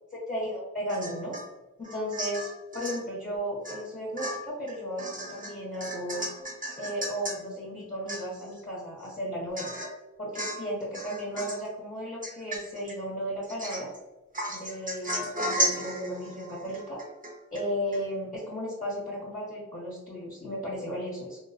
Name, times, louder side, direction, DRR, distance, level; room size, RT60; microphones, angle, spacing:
voice 1, 0.1-1.3 1.8-2.5 2.7-6.3 6.8-9.7 10.2-13.9 14.5-17.0 17.5-21.4, equal, 25° left, -8 dB, 1.2 m, -34 dB
Domestic sounds home sounds / Chink clink / Drip, 0.9-1.5 1.8-3.0 3.6-3.9 4.2-7.4 7.8-7.9 8.1-8.6 9.0-9.1 9.6-10.0 10.3-10.7 10.9-11.7 12.2-13.0 13.4-14.0 14.3-17.7 17.9-18.0, right 1 dB, 25° right, 1.0 m, -34 dB
3.6 x 2.3 x 2.5 m, 1.1 s
wide cardioid pair, 80°, 31 cm